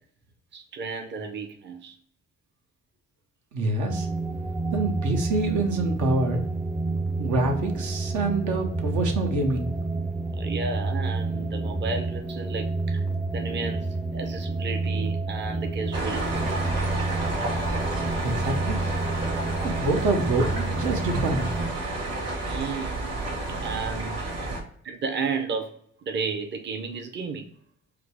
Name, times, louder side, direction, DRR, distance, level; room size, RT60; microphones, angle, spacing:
voice 1, 0.5-2.0 10.4-13.0 13.3-16.6 22.4-23.1 23.6-24.2 24.8-27.5, right 4 dB, 35° right, 5 dB, 0.6 m, -33 dB
voice 2, 3.5-4.1 4.7-6.4 7.2-9.7 18.2-18.8 19.6-21.5, right 2 dB, 80° right, 3 dB, 1.0 m, -26 dB
sound 1, 3.9-21.7, right 3 dB, ahead, 0.3 m, -29 dB
sound 2, 15.9-24.6, right 2 dB, 55° right, 1.7 m, -30 dB
5.0 x 2.0 x 4.6 m, 0.64 s
cardioid pair, 90°, 30 cm